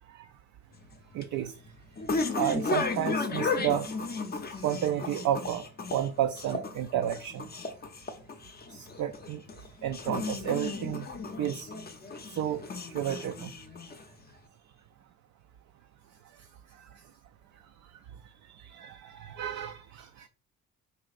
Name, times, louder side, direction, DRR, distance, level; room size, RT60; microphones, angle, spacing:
sound 1, 0.7-14.3, left 3 dB, 25° left, 0.6 m, -35 dB
voice 1, 1.1-1.5 2.3-3.9 4.6-5.6 5.9-7.5 8.7-9.4 9.8-11.1 11.4-11.7 12.3-12.6 12.9-13.5 18.5-20.3, right 11 dB, 45° right, 0.4 m, -31 dB
3.2 x 2.4 x 4.0 m
hypercardioid pair, 45°, 41 cm